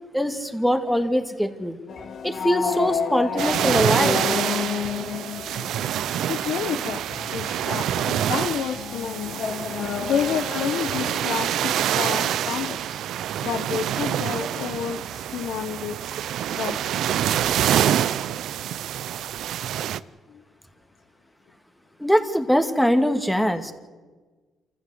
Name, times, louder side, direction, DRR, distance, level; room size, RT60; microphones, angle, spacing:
voice 1, 0.1-1.8 2.2-4.2 22.0-23.7, equal, ahead, 7 dB, 2.1 m, -22 dB
sound 1, 1.9-11.6, left 6 dB, 60° left, 2.0 m, -31 dB
sound 2, 3.4-20.0, right 11 dB, 80° right, 0.6 m, -26 dB
voice 2, 6.3-7.0 7.3-13.0 13.4-16.0 16.5-16.8 17.8-17.9 20.3-20.4, left 8 dB, 80° left, 6 dB, 1.1 m, -30 dB
27.0 x 15.0 x 8.0 m, 1.3 s
cardioid pair, 90°, 0 cm